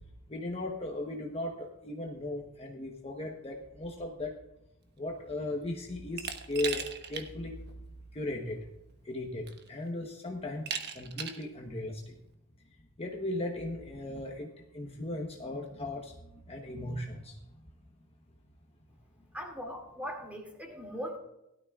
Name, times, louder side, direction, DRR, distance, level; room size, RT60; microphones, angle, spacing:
voice 1, 0.3-4.4 5.0-6.8 7.1-7.6 8.1-8.6 9.0-12.0 13.0-14.5 14.7-16.1 16.5-17.4, left 1 dB, 30° left, 1 dB, 1.0 m, -37 dB
Glass, 6.2-7.3 7.7-7.8 8.9-9.0 9.5-9.9 10.7-11.5, right 7 dB, 50° right, 1.1 m, -37 dB
voice 2, 19.3-21.2, equal, 5° right, 1 dB, 2.3 m, -40 dB
17.0 x 12.5 x 2.4 m, 0.86 s
head